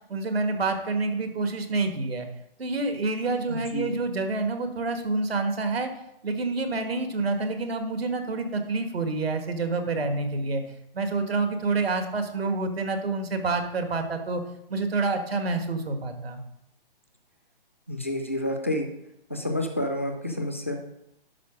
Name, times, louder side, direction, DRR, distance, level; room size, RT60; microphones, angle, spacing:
voice 1, 0.1-2.3 2.6-5.9 6.2-10.6 10.9-14.4 14.7-16.4, right 3 dB, 90° right, 6 dB, 1.8 m, -28 dB
voice 2, 3.5-3.9 17.9-18.9 19.3-20.8, left 1 dB, 15° left, 4 dB, 0.3 m, -29 dB
11.0 x 4.0 x 6.0 m, 0.80 s
hypercardioid pair, 160°, 30 cm